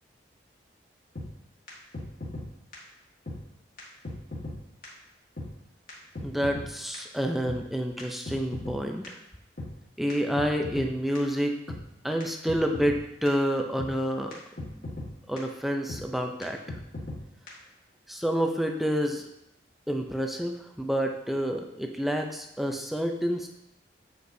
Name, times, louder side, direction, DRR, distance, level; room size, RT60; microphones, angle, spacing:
sound 1, 1.2-1.3 1.7-1.8 1.9-2.5 2.7-2.8 3.3-3.4 3.8-3.9 4.0-4.6 4.8-4.9 5.4-5.5 5.9-6.0 6.2-6.7 6.9-7.0 7.5-7.6 8.0-8.8 9.0-9.1 9.6-9.7 10.1-10.2 10.4-10.9 11.2-11.3 11.7-11.8 12.2-12.3 12.5-13.0 13.3-13.4 13.8-13.9 14.3-14.4 14.6-15.1 15.4-15.5 15.9-16.0 16.4-16.5 16.7-17.2 17.5-17.6, left 2 dB, 50° left, 1.6 m, -37 dB
voice 1, 6.2-9.2 10.0-11.6 12.0-14.3 14.6-14.7 15.3-16.6 18.1-19.3 19.9-23.5, equal, ahead, 3 dB, 0.4 m, -28 dB
8.1 x 4.9 x 2.7 m, 0.83 s
head